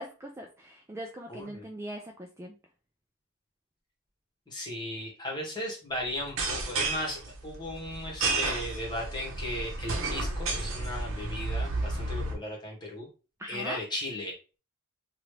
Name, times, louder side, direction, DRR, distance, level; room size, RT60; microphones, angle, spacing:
voice 1, 0.0-2.5 13.4-13.8, equal, 10° right, 2 dB, 0.3 m, -41 dB
voice 2, 1.3-1.7 4.5-13.1 13.5-14.3, left 1 dB, 20° left, -2 dB, 1.3 m, -36 dB
sound 1, 6.2-12.3, right 3 dB, 65° right, 0.8 m, -32 dB
3.0 x 2.4 x 3.2 m, 0.34 s
head